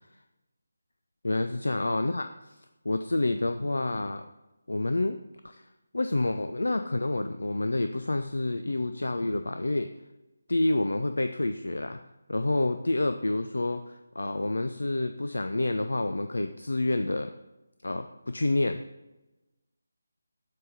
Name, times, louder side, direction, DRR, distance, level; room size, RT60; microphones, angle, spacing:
voice 1, 1.2-2.3 2.9-4.2 4.7-5.2 5.4-5.6 5.9-9.9 10.5-12.0 12.3-17.3 17.8-18.8, left 2 dB, 65° left, 8 dB, 0.3 m, -28 dB
7.5 x 3.4 x 5.6 m, 1.0 s
figure-of-eight pair, 155°, 0 cm